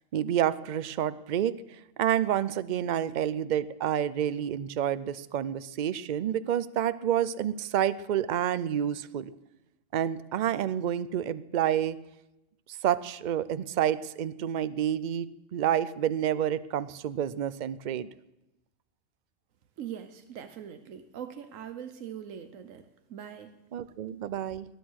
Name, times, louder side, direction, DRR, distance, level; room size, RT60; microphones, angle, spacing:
voice 1, 0.1-9.3 9.9-12.0 12.7-18.1 23.7-24.7, right 10 dB, 50° right, 16 dB, 0.6 m, -29 dB
voice 2, 19.8-23.5, right 9 dB, 85° right, 9 dB, 1.3 m, -42 dB
18.5 x 10.5 x 6.3 m, 0.94 s
omnidirectional pair, 1.3 m